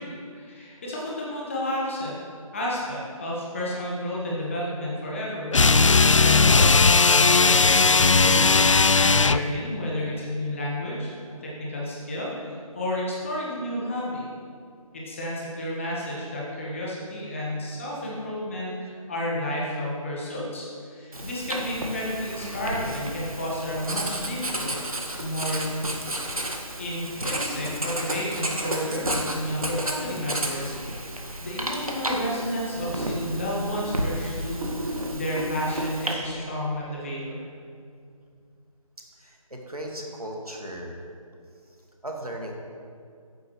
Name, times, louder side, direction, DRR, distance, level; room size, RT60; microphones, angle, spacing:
voice 1, 0.0-2.2 2.5-5.7 6.2-14.3 14.9-25.7 26.8-31.1 31.4-37.5, left 1 dB, 20° left, -5 dB, 1.5 m, -31 dB
sound 1, 5.5-9.5, left 4 dB, 60° left, 0.4 m, -17 dB
Writing, 21.1-36.1, right 1 dB, 75° right, 1.7 m, -32 dB
voice 2, 39.2-41.0 42.0-42.5, right 1 dB, 90° right, 0 dB, 1.9 m, -36 dB
14.5 x 9.0 x 3.2 m, 2.3 s
figure-of-eight pair, 160°, 18 cm